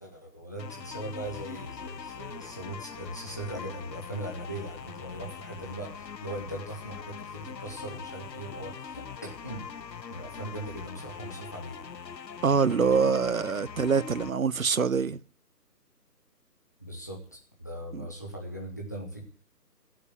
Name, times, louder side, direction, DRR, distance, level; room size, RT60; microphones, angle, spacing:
voice 1, 0.0-9.6 10.1-11.9 16.8-19.2, right 1 dB, 10° left, 1.2 m, -39 dB
sound 1, 0.6-14.3, left 6 dB, 85° left, 1.0 m, -42 dB
voice 2, 12.4-15.2 17.9-18.1, right 5 dB, 55° right, 0.8 m, -25 dB
15.0 x 8.6 x 9.6 m
hypercardioid pair, 175°, 49 cm